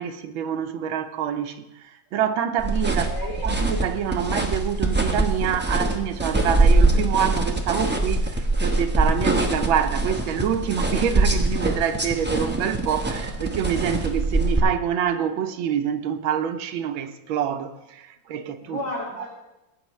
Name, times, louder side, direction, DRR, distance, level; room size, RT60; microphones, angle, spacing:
voice 1, 0.0-1.7 2.1-3.1 3.4-18.8 19.2-19.3, right 8 dB, 85° right, 1.5 m, -26 dB
sound 1, 2.6-14.6, right 2 dB, 15° right, 0.4 m, -23 dB
voice 2, 3.0-3.6 18.6-19.3, left 1 dB, 90° left, 4.5 m, -33 dB
17.5 x 9.0 x 3.1 m
omnidirectional pair, 2.1 m